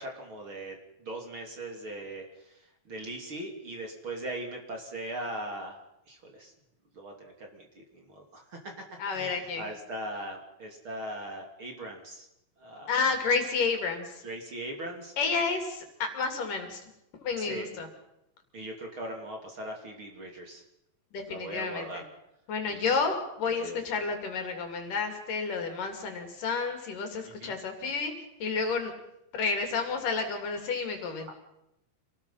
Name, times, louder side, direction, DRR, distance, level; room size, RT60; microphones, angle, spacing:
voice 1, 0.0-2.2 2.9-5.8 6.1-6.5 7.0-8.7 9.1-12.3 12.6-12.9 14.2-15.1 17.4-17.6 18.5-20.6 21.3-22.0 22.9-23.0 23.4-23.8 27.2-27.5, right 1 dB, 35° right, 2 dB, 3.3 m, -39 dB
voice 2, 9.0-9.7 12.9-14.2 15.2-16.8 17.2-17.9 21.1-22.0 22.5-28.1 28.4-28.9 29.3-31.3, left 4 dB, 65° left, 5 dB, 4.2 m, -30 dB
27.0 x 19.0 x 5.7 m, 0.83 s
omnidirectional pair, 4.2 m